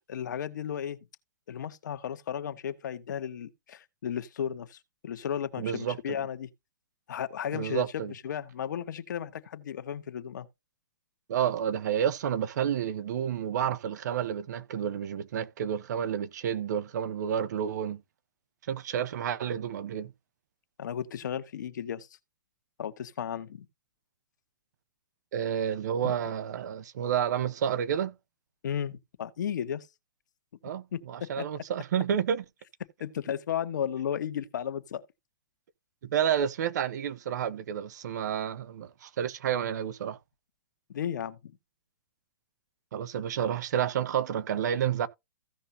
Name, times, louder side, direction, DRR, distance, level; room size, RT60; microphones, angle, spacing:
voice 1, 0.1-1.1 1.5-6.5 7.1-10.5 20.8-22.1 22.8-23.7 26.0-26.1 28.6-29.9 30.9-31.5 33.0-35.0 40.9-41.5, left 9 dB, 70° left, 1.4 m, -34 dB
voice 2, 5.6-6.0 7.5-8.1 11.3-18.0 18.7-20.1 25.3-28.1 30.6-32.4 36.0-40.2 42.9-45.1, right 9 dB, 65° right, 1.2 m, -30 dB
15.5 x 5.6 x 2.8 m
hypercardioid pair, 130°, 10 cm